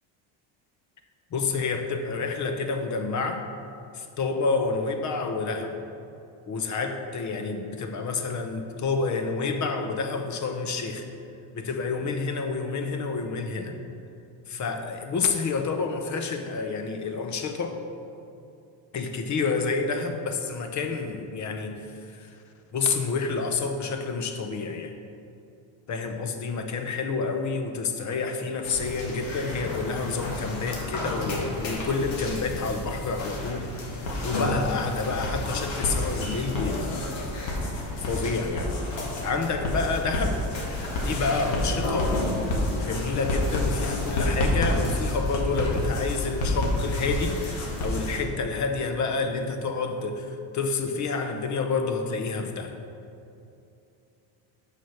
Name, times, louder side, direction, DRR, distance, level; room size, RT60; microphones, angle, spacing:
voice 1, 1.3-3.5 3.9-5.8 6.5-11.1 11.5-13.8 14.5-17.8 18.9-22.4 22.7-24.9 25.9-37.5 38.0-38.7 39.2-40.4 40.9-52.7, left 4 dB, 35° left, 6 dB, 0.8 m, -29 dB
sound 1, 28.6-48.2, left 1 dB, 65° left, 1.9 m, -29 dB
6.3 x 5.8 x 5.6 m, 2.7 s
cardioid pair, 115°, 49 cm